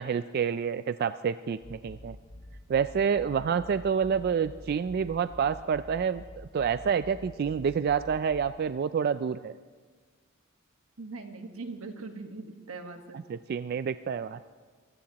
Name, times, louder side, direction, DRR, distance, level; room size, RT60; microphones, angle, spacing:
voice 1, 0.0-2.2 2.7-9.5 13.3-14.4, right 7 dB, 50° right, 12 dB, 0.3 m, -28 dB
sound 1, 1.6-8.5, left 1 dB, 25° left, 4.0 m, -48 dB
voice 2, 11.0-13.2, right 3 dB, 85° right, 5 dB, 1.4 m, -41 dB
24.5 x 16.0 x 2.9 m, 1.5 s
head